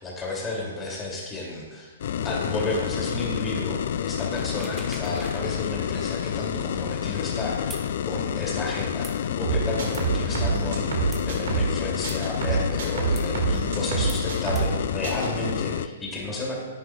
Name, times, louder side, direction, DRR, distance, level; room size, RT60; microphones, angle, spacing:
voice 1, 0.0-2.0 2.2-10.9 11.2-16.6, left 2 dB, 15° left, -3 dB, 2.7 m, -32 dB
sound 1, 2.0-15.9, left 9 dB, 60° left, 0.3 m, -29 dB
sound 2, 4.4-5.4 5.8-5.9 7.7-7.9 9.0-9.2 9.9-10.1 11.1-11.2 12.1-12.2 13.2-13.3 14.1-14.2 14.6-14.7, right 2 dB, 10° right, 1.2 m, -42 dB
sound 3, 9.4-11.8 12.0-14.8 15.0-15.3, right 5 dB, 65° right, 1.9 m, -26 dB
11.0 x 9.6 x 2.4 m, 1.4 s
hypercardioid pair, 125°, 0 cm